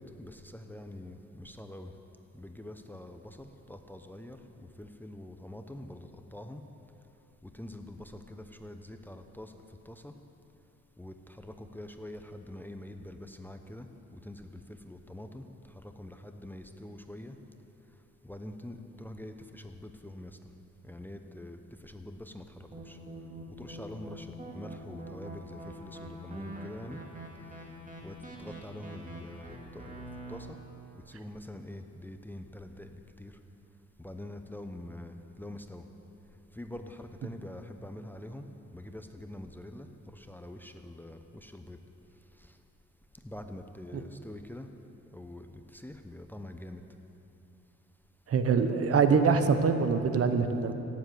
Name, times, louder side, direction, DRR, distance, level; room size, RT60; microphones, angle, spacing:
voice 1, 0.0-1.9 2.3-4.4 4.8-6.6 7.6-9.5 9.9-10.1 11.0-13.9 14.1-14.5 14.8-15.5 16.0-17.4 18.2-20.3 20.9-23.0 23.6-24.3 24.5-27.0 28.0-30.0 30.3-30.6 31.1-32.9 33.2-33.3 34.0-35.8 36.6-38.4 38.7-39.9 40.1-41.8 43.2-44.7 45.1-45.5 45.7-46.8, left 1 dB, 5° left, 6 dB, 0.8 m, -45 dB
sound 1, 22.7-30.4, right 1 dB, 25° right, 2.5 m, -44 dB
voice 2, 48.3-50.7, right 5 dB, 50° right, 8 dB, 1.0 m, -24 dB
17.0 x 7.5 x 7.9 m, 3.0 s
cardioid pair, 90°, 30 cm